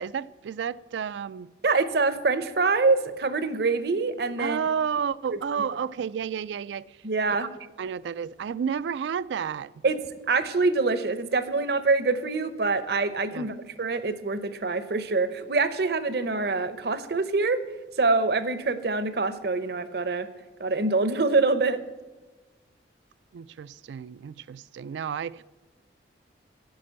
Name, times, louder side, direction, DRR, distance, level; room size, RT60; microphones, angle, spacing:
voice 1, 0.0-1.5 4.4-7.0 7.3-7.5 7.8-9.7 13.3-13.5 23.3-25.4, right 7 dB, 80° right, 0.3 m, -31 dB
voice 2, 1.6-4.6 7.0-7.5 9.8-10.0 10.3-17.6 18.0-20.3 20.6-21.8, right 3 dB, 60° right, 0.7 m, -25 dB
9.6 x 6.0 x 7.5 m
head